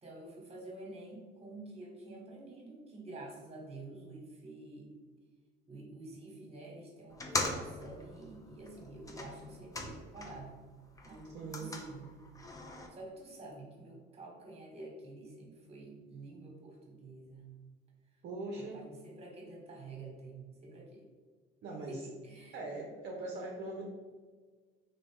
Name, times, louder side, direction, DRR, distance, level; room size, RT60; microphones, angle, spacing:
voice 1, 0.0-4.9 5.7-10.6 11.0-12.2 12.9-17.5 18.5-21.1 21.9-22.6, right 2 dB, 30° right, -1 dB, 1.2 m, -49 dB
sound 1, 7.1-10.5 10.9-12.9, left 2 dB, 15° left, 0.5 m, -41 dB
voice 2, 11.3-11.8 18.2-18.8 21.6-22.0 22.5-23.8, right 2 dB, 55° right, -1 dB, 0.6 m, -41 dB
2.9 x 2.6 x 3.4 m, 1.5 s
supercardioid pair, 80°, 21 cm